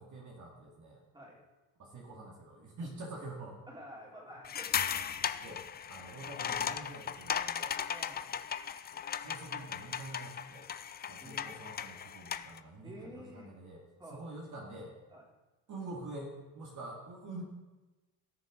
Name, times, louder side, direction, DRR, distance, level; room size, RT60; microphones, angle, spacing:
voice 1, 0.0-1.0 1.8-3.7 5.4-7.8 9.2-10.7 11.1-13.8 14.1-14.9 15.7-17.4, right 2 dB, 45° right, -2 dB, 2.2 m, -46 dB
voice 2, 3.7-4.7 5.9-6.1 7.9-8.5 11.2-11.6 12.8-13.5 14.0-14.2 15.1-15.2, equal, 10° right, -3 dB, 3.1 m, -50 dB
sound 1, 4.4-12.6, left 8 dB, 25° left, 0.4 m, -37 dB
17.5 x 6.7 x 3.8 m, 1.2 s
cardioid pair, 110°, 43 cm